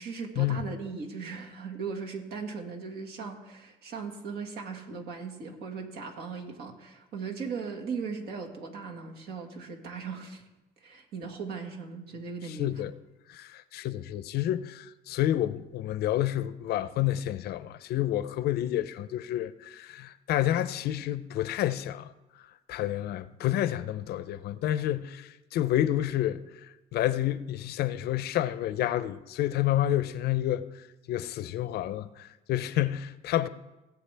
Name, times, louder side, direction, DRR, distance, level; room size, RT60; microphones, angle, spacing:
voice 1, 0.0-10.4 10.8-12.7, right 5 dB, 70° right, 1.8 m, -38 dB
voice 2, 12.4-12.9 13.3-22.1 22.4-33.5, left 13 dB, 70° left, 0.6 m, -29 dB
18.0 x 7.9 x 3.4 m
cardioid pair, 110°, 17 cm